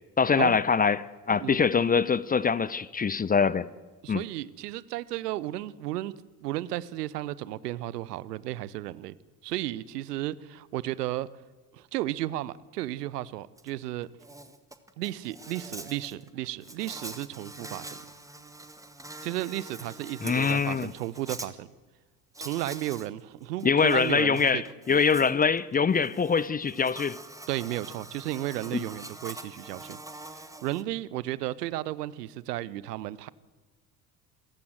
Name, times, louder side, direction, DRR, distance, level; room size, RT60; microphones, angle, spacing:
voice 1, 0.2-3.7 4.1-4.2 20.2-20.9 23.6-27.2 28.7-28.8, left 5 dB, 20° left, 0.7 m, -24 dB
voice 2, 4.0-6.1 6.4-9.1 9.4-11.3 11.7-14.1 15.0-18.0 19.2-21.7 22.4-24.6 27.5-30.0 30.3-33.3, right 15 dB, 70° right, 0.9 m, -33 dB
Insect, 13.6-13.7 14.0-21.5 22.3-23.1 23.4-30.8, right 1 dB, 5° right, 1.8 m, -44 dB
28.0 x 15.5 x 7.9 m
figure-of-eight pair, 60°, 49 cm